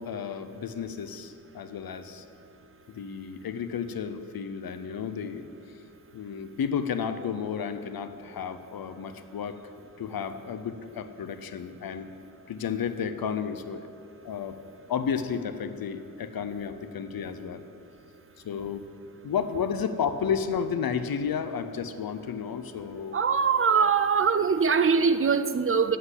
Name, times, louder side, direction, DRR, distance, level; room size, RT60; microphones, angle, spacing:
voice 1, 0.0-2.2 2.9-5.4 6.1-9.6 10.0-12.1 12.5-13.9 14.2-14.6 14.9-17.6 18.4-18.8 19.2-23.2, left 7 dB, 85° left, 10 dB, 0.7 m, -32 dB
voice 2, 23.1-26.0, right 6 dB, 40° right, 11 dB, 0.4 m, -22 dB
8.1 x 7.6 x 8.1 m, 2.8 s
wide cardioid pair, 140°, 35 cm